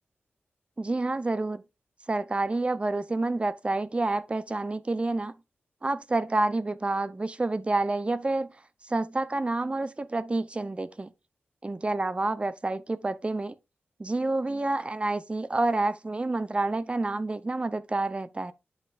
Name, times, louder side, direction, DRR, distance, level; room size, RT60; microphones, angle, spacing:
voice 1, 0.8-1.6 2.1-5.3 5.8-8.5 8.8-11.1 11.6-13.6 14.0-18.5, right 2 dB, 25° right, 0.7 m, -28 dB
9.5 x 5.4 x 2.5 m
wide cardioid pair, 85°, 4 cm